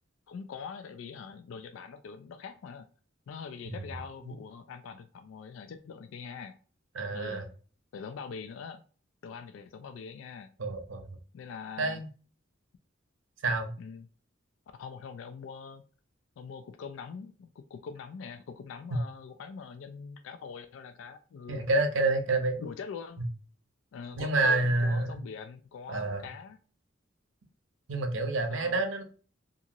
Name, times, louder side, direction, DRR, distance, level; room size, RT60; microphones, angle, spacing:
voice 1, 0.3-2.9 3.3-6.6 7.1-7.4 7.9-8.8 9.2-10.5 11.3-12.0 13.8-14.1 14.7-15.8 16.4-21.6 22.3-23.2 23.9-26.6 28.5-28.8, left 6 dB, 75° left, 9 dB, 0.3 m, -43 dB
voice 2, 6.9-7.4 10.6-11.1 11.8-12.1 13.4-13.7 21.5-22.6 24.2-25.1 25.9-26.2 27.9-29.0, right 2 dB, 75° right, 5 dB, 0.7 m, -28 dB
2.8 x 2.5 x 2.5 m, 0.40 s
head